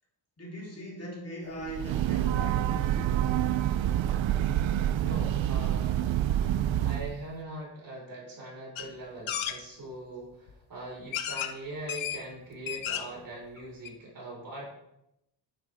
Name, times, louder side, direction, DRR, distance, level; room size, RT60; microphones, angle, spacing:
voice 1, 0.4-3.2, equal, 30° left, 3.4 m, -41 dB
Breathing / Train, 1.6-7.2, right 11 dB, 75° right, 0.6 m, -27 dB
voice 2, 5.0-6.0 6.8-14.6, right 1 dB, 45° right, 4.7 m, -41 dB
sound 1, 8.8-8.9 9.3-9.6 10.5-10.6 11.1-11.5 11.9-12.2 12.5-13.2 13.6-13.7 13.9-14.0, left 10 dB, 85° left, 1.0 m, -33 dB
10.5 x 10.0 x 3.5 m
wide cardioid pair, 135°, 46 cm